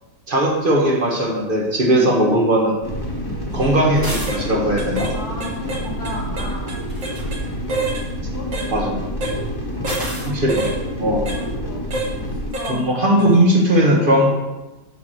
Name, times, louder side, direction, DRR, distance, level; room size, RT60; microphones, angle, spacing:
voice 1, 0.3-2.8 3.5-5.1 8.7-9.0 10.3-10.7 11.0-11.3 12.7-14.3, right 1 dB, 35° right, -1 dB, 1.4 m, -18 dB
sound 1, 2.8-12.5, equal, 15° left, 1.2 m, -28 dB
voice 2, 3.2-3.6 5.1-6.8 7.5-7.9 8.2-8.9 9.8-10.3 11.2-12.8, left 1 dB, 60° left, -3 dB, 2.7 m, -35 dB
sound 2, 3.5-3.7 4.1-4.4 4.8-5.1 5.4-7.4 7.7-8.1 8.5-8.7 9.2-9.4 9.8-10.1 10.5-10.8 11.3-11.4 11.9-12.1 12.5-12.8 13.2-13.3, right 2 dB, 55° right, 1.6 m, -27 dB
sound 3, 4.0-4.4 6.8-7.3 9.9-10.3, right 1 dB, 10° right, 1.4 m, -30 dB
7.3 x 4.7 x 6.2 m, 1.1 s
omnidirectional pair, 1.9 m